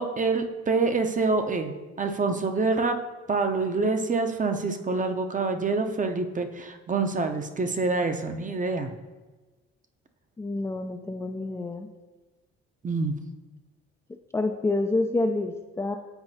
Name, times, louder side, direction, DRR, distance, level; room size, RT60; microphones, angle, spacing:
voice 1, 0.0-3.0 3.3-8.9 12.8-13.2, right 3 dB, 25° right, 6 dB, 0.6 m, -26 dB
voice 2, 10.4-11.9 14.3-16.0, left 2 dB, 10° left, 3 dB, 0.3 m, -28 dB
8.1 x 4.7 x 2.7 m, 1.2 s
hypercardioid pair, 55°, 34 cm